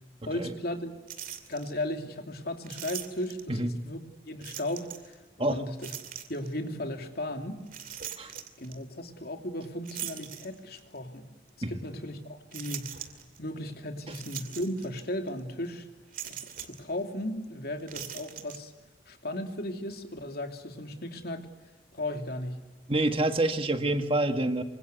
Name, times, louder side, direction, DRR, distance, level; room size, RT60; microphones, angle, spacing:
voice 1, 0.2-0.9 1.5-5.9 6.3-7.6 8.2-11.3 11.7-13.1 13.4-15.9 16.3-18.7 19.1-21.5 21.9-22.6, left 1 dB, 55° left, 5 dB, 2.8 m, -36 dB
sound 1, 1.1-1.7 2.6-3.6 4.4-5.1 5.8-6.5 7.7-8.8 9.9-10.9 11.5-11.6 12.5-13.4 14.1-15.0 15.3-15.4 16.1-16.8 17.8-18.6, right 10 dB, 50° right, 2.6 m, -41 dB
voice 2, 22.9-24.6, right 1 dB, 30° right, 7 dB, 1.7 m, -27 dB
27.0 x 25.5 x 8.2 m, 1.2 s
head